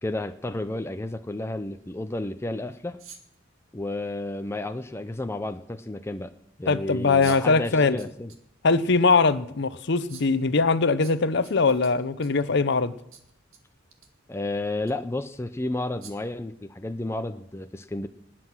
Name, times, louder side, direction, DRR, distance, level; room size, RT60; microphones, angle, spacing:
voice 1, 0.0-3.0 3.7-6.3 6.6-8.3 14.3-18.1, left 2 dB, 15° left, 0.5 m, -32 dB
sound 1, 3.0-3.4 4.9-5.0 7.2-7.5 8.0-8.4 8.8-8.9 10.1-10.4 11.0-12.5 13.1-13.6 13.9-14.1 14.8-14.9 16.0-16.3, right 7 dB, 85° right, 1.8 m, -47 dB
voice 2, 6.7-8.0 8.6-12.9, left 4 dB, 60° left, 0.8 m, -21 dB
19.5 x 7.6 x 6.1 m
head